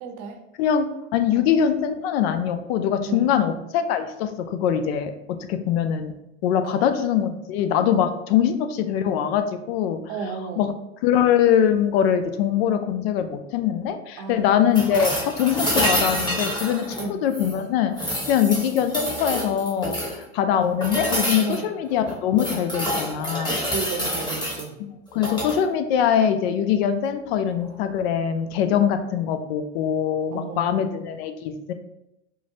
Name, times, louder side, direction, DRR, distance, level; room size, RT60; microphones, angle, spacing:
voice 1, 0.0-0.4 1.3-1.5 3.0-3.3 6.6-6.8 7.9-8.1 10.1-10.7 14.2-15.2 17.0-17.2 21.4-21.7 23.5-24.8 30.3-30.7, right 5 dB, 50° right, 4 dB, 0.7 m, -33 dB
voice 2, 0.6-6.1 6.4-10.0 10.6-10.7 11.0-23.5 24.8-31.7, left 9 dB, 60° left, 8 dB, 0.5 m, -23 dB
sound 1, 14.7-17.6 17.9-20.2 20.8-21.6 22.1-24.6 25.1-25.6 27.6-27.7, equal, 15° left, 1.1 m, -27 dB
4.6 x 2.1 x 2.7 m, 0.88 s
hypercardioid pair, 100°, 34 cm